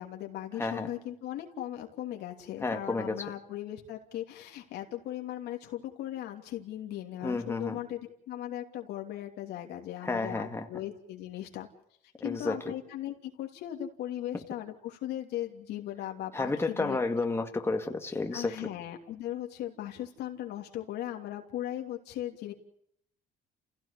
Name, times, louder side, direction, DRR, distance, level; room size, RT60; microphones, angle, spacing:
voice 1, 0.0-8.0 8.3-11.7 12.2-17.0 18.3-22.5, left 12 dB, 80° left, 3 dB, 3.0 m, -38 dB
voice 2, 2.6-3.2 7.2-7.8 10.0-10.7 12.2-12.6 16.3-18.5, left 3 dB, 15° left, 4 dB, 2.0 m, -31 dB
29.5 x 16.5 x 8.4 m, 0.71 s
cardioid pair, 110°, 17 cm